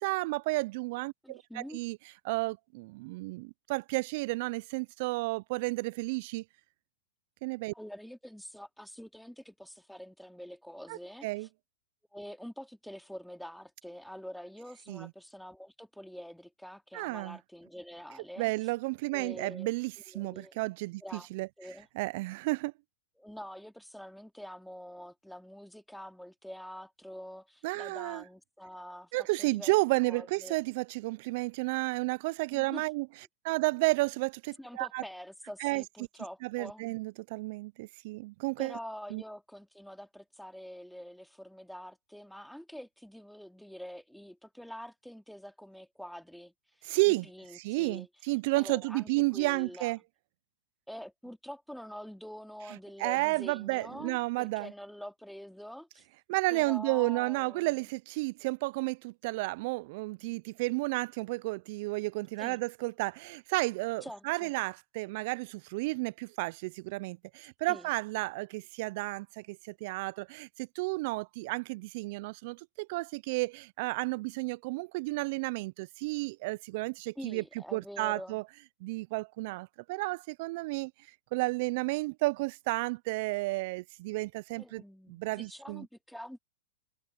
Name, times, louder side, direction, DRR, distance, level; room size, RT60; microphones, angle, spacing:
voice 1, 0.0-2.0 2.2-6.4 7.4-7.7 10.9-11.5 14.9-15.1 16.9-17.4 18.4-21.5 22.0-22.7 27.6-28.2 29.1-33.1 33.4-35.0 35.6-35.8 36.4-38.8 39.1-39.2 46.8-47.3 47.5-50.0 53.0-54.7 56.3-77.4 77.7-78.4 78.8-80.9 81.3-84.8 85.1-85.8, right 23 dB, 55° right, 0.4 m, -32 dB
voice 2, 1.2-1.8 7.7-11.5 12.1-18.5 19.1-19.7 20.1-20.6 21.0-21.3 21.6-21.9 23.2-29.7 30.1-30.6 32.5-32.9 34.6-36.9 38.6-46.5 46.8-48.1 48.6-50.0 50.9-56.0 56.5-57.8 60.2-60.4 62.4-62.6 64.0-64.5 67.7-67.9 77.2-78.4 84.6-86.4, equal, ahead, 2.8 m, -46 dB
hypercardioid pair, 115°, 0 cm